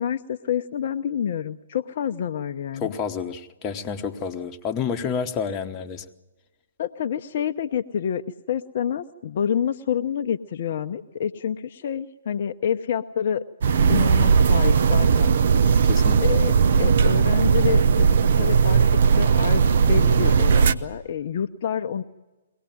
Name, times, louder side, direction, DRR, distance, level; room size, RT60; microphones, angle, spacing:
voice 1, 0.0-2.9 6.8-13.4 13.9-15.4 16.2-18.1 18.4-18.8 19.1-22.0, left 8 dB, 55° left, 7 dB, 0.7 m, -28 dB
voice 2, 2.8-6.1 15.7-16.2, left 6 dB, 25° left, 5 dB, 1.2 m, -29 dB
sound 1, 13.6-20.7, right 6 dB, 60° right, 0.8 m, -18 dB
22.5 x 18.5 x 9.3 m, 1.2 s
figure-of-eight pair, 130°, 0 cm